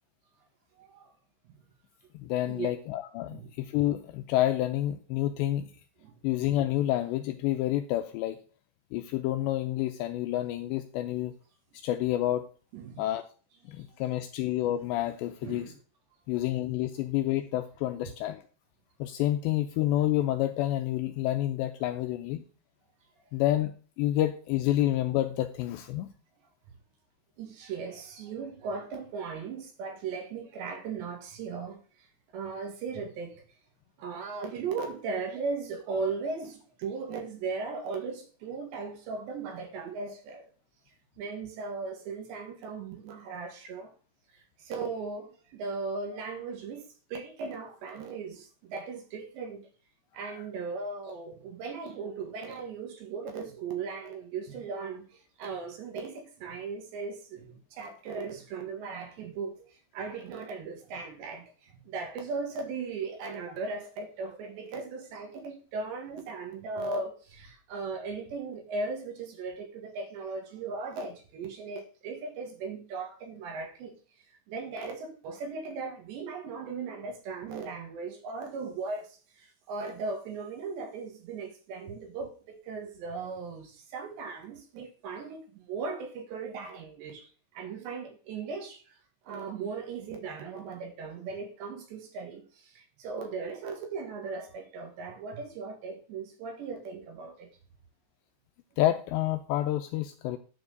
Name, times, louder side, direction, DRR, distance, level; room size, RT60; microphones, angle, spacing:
voice 1, 0.8-1.1 1.5-1.6 2.5-2.7 3.3-3.5 6.0-6.1 12.7-13.0 15.4-15.7 27.4-31.8 32.3-33.4 34.0-40.5 41.2-43.9 44.3-46.8 47.1-49.7 50.1-74.0 74.5-87.3 87.5-89.0 89.3-97.5, right 4 dB, 70° right, 3.8 m, -37 dB
voice 2, 2.2-5.7 6.2-8.4 8.9-11.3 11.7-12.5 13.0-13.2 13.7-15.7 16.3-18.4 19.0-22.4 23.3-26.1 50.2-50.4 98.8-100.4, left 13 dB, 80° left, 2.6 m, -29 dB
10.5 x 4.8 x 6.5 m
omnidirectional pair, 5.6 m